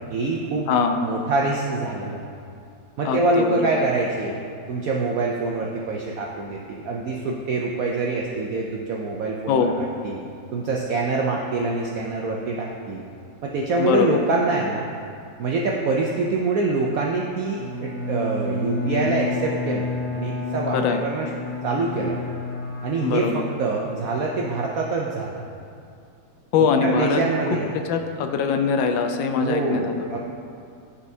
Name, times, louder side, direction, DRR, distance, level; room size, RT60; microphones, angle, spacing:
voice 1, 0.1-0.7 1.0-2.2 3.0-4.4 4.7-10.2 10.5-13.0 13.4-14.9 15.4-21.3 21.6-22.2 22.8-25.4 26.8-27.8 29.4-30.2, right 3 dB, 80° right, -1 dB, 0.7 m, -25 dB
voice 2, 0.7-1.0 3.0-3.8 9.5-9.7 13.8-14.2 20.7-21.0 23.0-23.4 26.5-27.2 27.9-30.1, left 5 dB, 85° left, 5 dB, 1.3 m, -22 dB
Bowed string instrument, 17.5-24.1, left 3 dB, 45° left, 1.8 m, -30 dB
11.5 x 4.1 x 2.7 m, 2.5 s
omnidirectional pair, 2.0 m